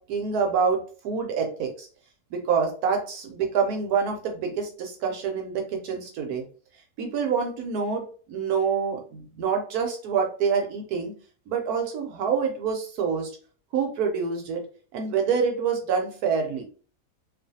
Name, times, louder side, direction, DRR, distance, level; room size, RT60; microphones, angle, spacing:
voice 1, 0.1-1.9 2.3-6.4 7.0-11.1 11.5-13.3 13.7-14.6 14.9-16.6, right 6 dB, 75° right, 3 dB, 1.1 m, -26 dB
2.6 x 2.4 x 2.7 m, 0.40 s
omnidirectional pair, 1.7 m